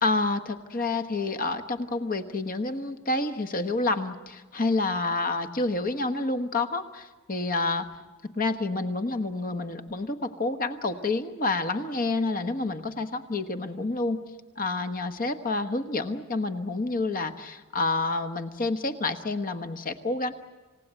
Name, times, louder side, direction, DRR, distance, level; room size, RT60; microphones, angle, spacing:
voice 1, 0.0-7.9 8.2-14.2 14.6-20.3, left 3 dB, 45° left, 8 dB, 1.3 m, -28 dB
27.5 x 17.0 x 8.9 m, 1.3 s
head